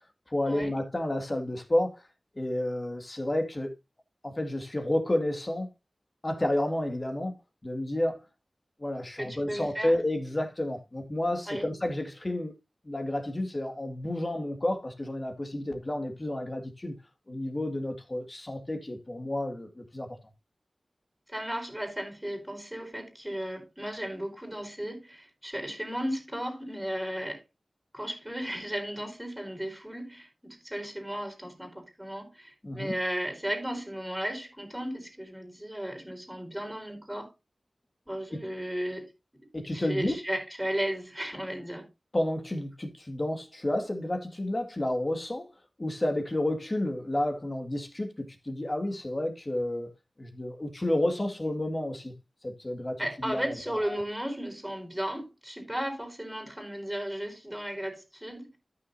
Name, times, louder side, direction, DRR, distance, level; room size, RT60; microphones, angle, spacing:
voice 1, 0.3-2.1 2.4-3.7 4.2-5.7 6.2-7.4 7.6-8.2 8.8-12.5 12.8-17.0 17.3-20.1 32.6-32.9 38.3-38.4 39.5-40.2 42.1-45.5 45.8-49.9 50.2-52.1 52.4-54.0, left 1 dB, 35° left, 2.0 m, -31 dB
voice 2, 9.1-9.9 11.5-11.6 21.3-27.4 27.9-37.3 38.1-39.1 39.7-41.9 53.0-58.6, equal, 5° right, 4.3 m, -35 dB
13.5 x 6.3 x 2.7 m
wide cardioid pair, 65°, 0 cm